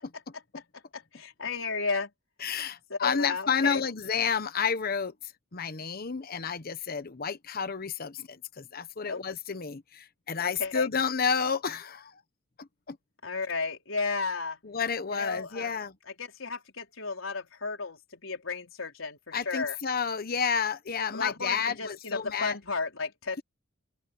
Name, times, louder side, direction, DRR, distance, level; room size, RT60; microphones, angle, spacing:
voice 1, 0.9-2.1 2.9-3.8 9.0-9.2 10.4-10.9 13.2-14.6 15.1-15.7 16.2-19.8 21.1-23.4, left 4 dB, 80° left, 4.5 m, -33 dB
voice 2, 2.4-12.1 12.6-13.0 14.6-15.9 19.3-22.6, left 6 dB, 50° left, 1.0 m, -30 dB
open air
head